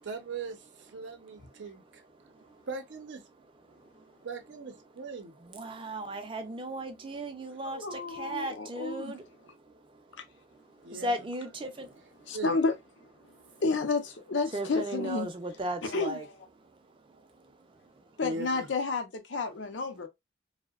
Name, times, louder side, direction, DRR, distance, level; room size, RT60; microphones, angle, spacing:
voice 1, 0.0-2.0 2.7-3.2 4.2-5.4 10.8-11.2 12.3-12.5 18.2-18.7, right 3 dB, 80° right, 0.6 m, -39 dB
voice 2, 1.0-2.7 3.6-4.3 5.4-12.4 13.2-13.6 14.5-16.3 16.6-18.2, right 1 dB, 25° right, 0.4 m, -39 dB
voice 3, 7.7-9.1 12.3-12.7 13.6-15.3 15.9-16.2 18.2-20.1, left 3 dB, 85° left, 0.5 m, -30 dB
2.7 x 2.1 x 2.2 m
head